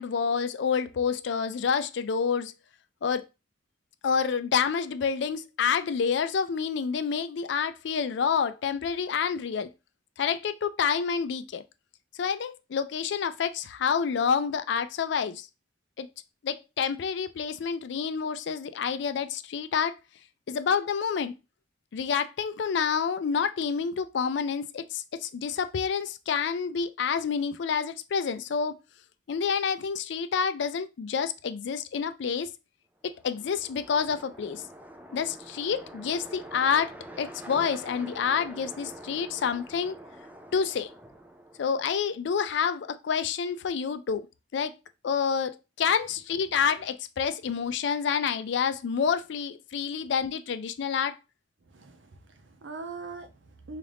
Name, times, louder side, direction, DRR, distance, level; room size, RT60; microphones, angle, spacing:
voice 1, 0.0-2.5 3.0-3.3 4.0-9.7 10.2-11.6 12.2-15.5 16.0-16.1 16.4-20.0 20.5-21.3 21.9-28.8 29.3-32.5 33.0-34.6 35.1-40.0 40.5-40.9 41.6-44.3 44.5-44.7 45.0-51.1, left 6 dB, 70° left, 0.4 m, -28 dB
sound 1, 33.0-42.1, right 1 dB, 10° right, 0.4 m, -46 dB
voice 2, 51.7-53.8, right 3 dB, 85° right, 0.7 m, -42 dB
3.8 x 2.4 x 3.4 m
head